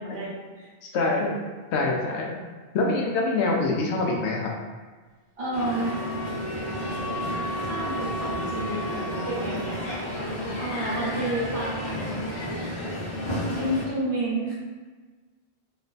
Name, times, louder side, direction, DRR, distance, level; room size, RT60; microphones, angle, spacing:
voice 1, 0.0-0.7 5.4-6.0 6.9-12.2 13.6-14.5, right 1 dB, 60° right, -7 dB, 1.3 m, -31 dB
voice 2, 0.8-1.4 1.7-2.4 2.7-4.5, left 3 dB, 75° left, -1 dB, 0.9 m, -25 dB
Wind instrument woodwind instrument, 5.4-9.8, right 1 dB, 45° right, 0.6 m, -35 dB
Crowd, 5.5-13.8, left 1 dB, 45° left, 0.9 m, -32 dB
3.1 x 2.1 x 3.8 m, 1.4 s
omnidirectional pair, 1.1 m